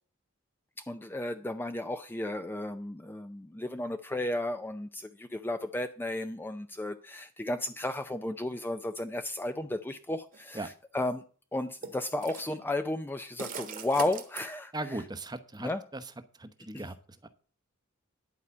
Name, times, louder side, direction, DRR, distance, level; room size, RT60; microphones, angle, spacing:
voice 1, 0.9-11.2 11.5-15.0 15.6-15.8 16.7-16.9, left 1 dB, 10° left, 8 dB, 0.4 m, -34 dB
sound 1, 10.3-10.5 11.8-12.5 13.4-14.4, right 5 dB, 40° right, 1.4 m, -39 dB
voice 2, 14.7-16.0 16.4-16.9 17.2-17.3, right 2 dB, 20° right, 11 dB, 0.9 m, -38 dB
11.0 x 4.8 x 8.3 m, 0.40 s
head